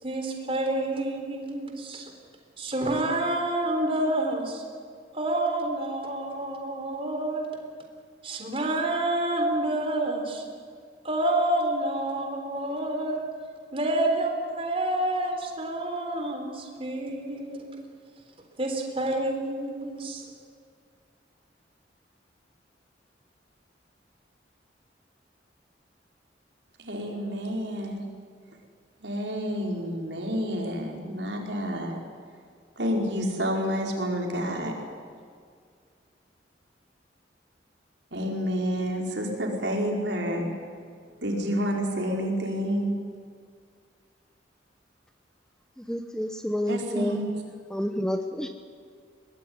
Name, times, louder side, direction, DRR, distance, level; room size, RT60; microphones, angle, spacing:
voice 1, 0.0-2.1 2.6-4.6 5.1-7.6 8.2-10.4 11.0-13.2 13.7-17.7 18.6-20.2, right 1 dB, 30° right, 3 dB, 3.8 m, -28 dB
voice 2, 26.8-28.0 29.0-32.0 32.8-34.7 38.1-40.5 41.2-42.9 46.7-47.2, equal, 75° right, 1 dB, 4.9 m, -29 dB
voice 3, 45.8-47.2 47.7-48.5, equal, 5° left, 7 dB, 1.0 m, -29 dB
23.0 x 19.0 x 9.7 m, 2.1 s
head